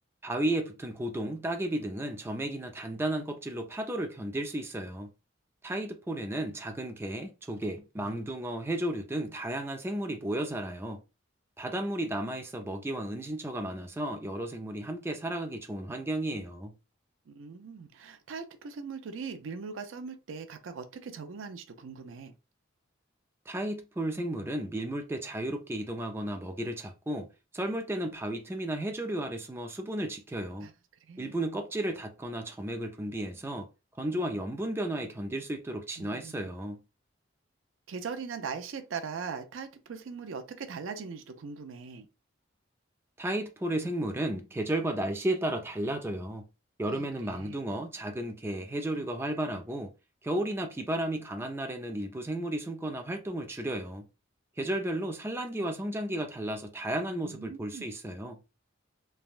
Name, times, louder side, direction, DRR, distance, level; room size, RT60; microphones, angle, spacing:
voice 1, 0.2-5.1 5.6-11.0 11.6-16.7 23.5-27.3 27.5-30.7 31.2-33.7 34.0-36.8 43.2-46.4 46.8-49.9 50.2-54.0 54.6-58.4, right 1 dB, 10° right, 0.4 m, -33 dB
voice 2, 17.3-22.3 30.6-30.7 31.1-31.3 36.0-36.5 37.9-42.1 46.8-47.6 57.1-57.9, right 5 dB, 80° right, 0.5 m, -40 dB
3.3 x 2.1 x 2.4 m
head